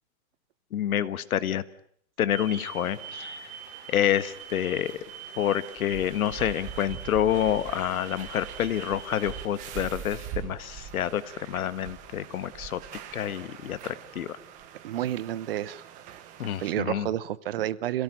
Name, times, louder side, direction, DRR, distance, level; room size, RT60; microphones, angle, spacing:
voice 1, 0.7-1.6 2.2-3.4 3.9-4.9 5.4-11.2 11.5-12.8 13.1-14.3 16.4-17.1, left 10 dB, 90° left, 15 dB, 1.7 m, -28 dB
sound 1, 2.3-16.7, right 9 dB, 20° right, 1.3 m, -42 dB
voice 2, 14.8-15.8 16.6-18.0, right 12 dB, 45° right, 19 dB, 0.9 m, -30 dB
27.0 x 17.5 x 9.0 m, 0.65 s
supercardioid pair, 175°, 41 cm